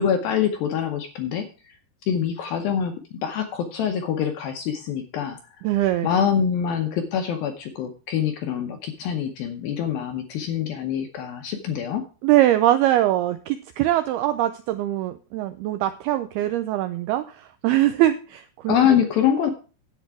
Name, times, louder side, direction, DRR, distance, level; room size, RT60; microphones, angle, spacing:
voice 1, 0.0-1.5 2.1-2.9 3.2-5.4 6.0-12.0 18.7-19.5, left 8 dB, 75° left, 6 dB, 2.2 m, -24 dB
voice 2, 5.6-6.1 12.2-18.8, right 14 dB, 85° right, 11 dB, 2.2 m, -22 dB
10.0 x 8.4 x 4.7 m, 0.35 s
omnidirectional pair, 5.1 m